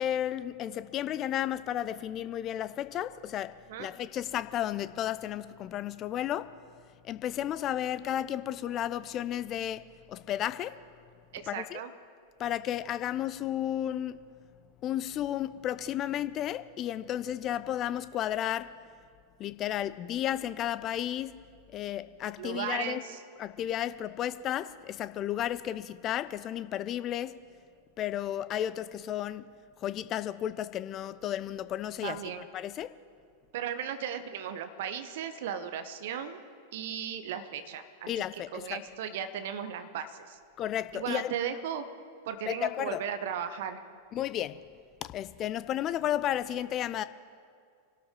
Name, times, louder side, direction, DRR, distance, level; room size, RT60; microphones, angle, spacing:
voice 1, 0.0-6.5 7.0-10.8 11.5-11.8 12.4-14.3 14.8-18.7 19.4-21.4 21.7-23.0 23.4-27.4 28.0-32.2 32.5-32.9 38.1-38.8 40.6-41.3 42.5-43.0 44.1-44.6 45.0-47.0, left 11 dB, 30° left, 0.5 m, -33 dB
voice 2, 11.3-11.9 22.4-23.2 32.0-32.4 33.5-36.4 36.7-38.1 38.5-40.4 40.9-41.8 42.3-43.8, right 8 dB, 55° right, 0.9 m, -36 dB
24.5 x 12.5 x 3.8 m
figure-of-eight pair, 90°, 0 cm